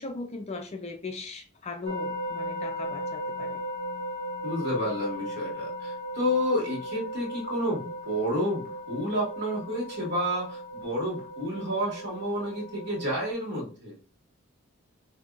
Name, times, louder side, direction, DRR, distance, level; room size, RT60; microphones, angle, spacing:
voice 1, 0.0-3.6, left 3 dB, 30° left, 4 dB, 0.4 m, -38 dB
sound 1, 1.8-13.3, equal, 75° right, 0.9 m, -37 dB
voice 2, 4.4-13.9, equal, 50° right, -3 dB, 1.7 m, -30 dB
5.2 x 2.7 x 2.4 m, 0.38 s
head